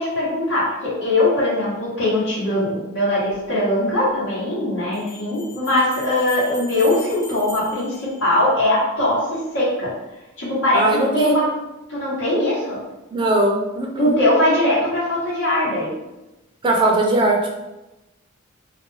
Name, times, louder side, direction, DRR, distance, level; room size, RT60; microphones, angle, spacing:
voice 1, 0.0-9.9 10.4-11.5 11.9-12.8 14.0-15.9, left 1 dB, 70° left, -9 dB, 1.0 m, -21 dB
sound 1, 3.3-3.4 4.9-8.9, left 1 dB, 15° left, 0.7 m, -40 dB
voice 2, 10.7-11.3 13.1-14.1 16.6-17.5, right 2 dB, 25° right, 0 dB, 0.4 m, -19 dB
2.4 x 2.1 x 3.1 m, 1.0 s
head